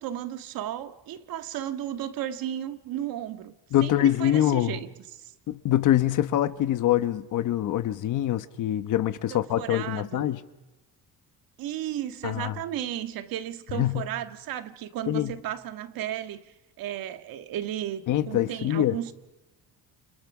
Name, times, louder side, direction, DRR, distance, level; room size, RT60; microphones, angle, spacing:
voice 1, 0.0-3.5 3.8-5.3 9.3-10.3 11.6-16.4 16.8-19.1, right 11 dB, 65° right, 1.7 m, -34 dB
voice 2, 3.7-4.8 5.5-10.4 12.2-12.6 13.7-14.0 15.1-15.3 18.1-19.0, left 12 dB, 55° left, 1.2 m, -24 dB
29.5 x 29.0 x 6.1 m
cardioid pair, 175°, 37 cm